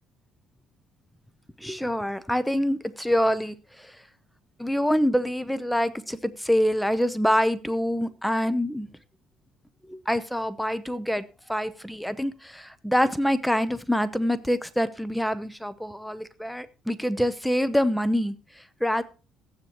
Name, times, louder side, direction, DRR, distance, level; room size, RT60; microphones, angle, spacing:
voice 1, 1.6-3.6 4.6-8.9 9.9-11.2 11.5-18.3 18.8-19.0, equal, ahead, 13 dB, 0.8 m, -25 dB
14.5 x 9.7 x 3.1 m, 0.34 s
supercardioid pair, 85°, 0 cm